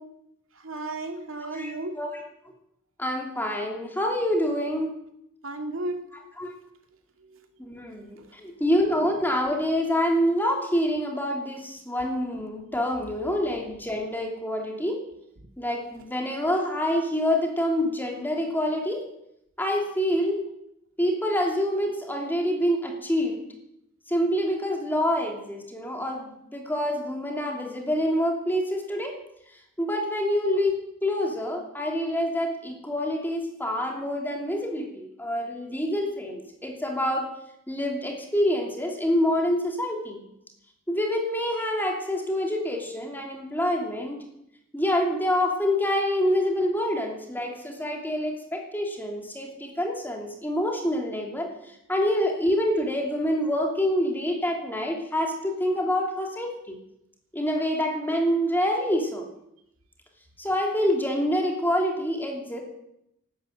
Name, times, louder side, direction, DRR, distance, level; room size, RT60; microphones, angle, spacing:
voice 1, 0.6-2.0 5.4-6.0 7.3-7.4 8.2-8.3, right 2 dB, 85° right, 5 dB, 2.4 m, -34 dB
voice 2, 3.0-4.9 6.4-6.5 7.6-15.0 15.6-19.0 19.6-20.5 21.0-23.5 24.1-29.2 29.8-37.3 37.7-40.2 40.9-44.2 44.7-51.5 51.9-56.7 57.3-59.3 60.4-62.6, equal, 10° left, 1 dB, 2.9 m, -26 dB
12.5 x 12.0 x 9.1 m, 0.80 s
head